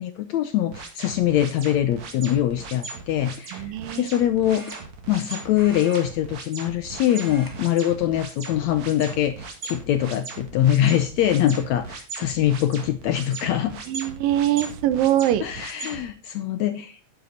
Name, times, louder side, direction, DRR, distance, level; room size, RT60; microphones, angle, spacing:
voice 1, 0.0-3.7 4.0-4.8 5.1-13.8 15.4-17.0, left 11 dB, 75° left, 9 dB, 1.7 m, -23 dB
sound 1, 0.7-16.0, right 4 dB, 55° right, 3.2 m, -38 dB
sound 2, 2.5-2.8 4.5-5.2 5.5-6.7 7.0-7.6 7.9-8.1 8.9-9.5 10.0-10.1 11.6-11.7 12.0-12.4, equal, 15° right, 0.7 m, -44 dB
voice 2, 3.5-4.1 13.9-15.4, right 12 dB, 80° right, 13 dB, 2.7 m, -23 dB
9.8 x 9.7 x 3.9 m, 0.35 s
omnidirectional pair, 4.0 m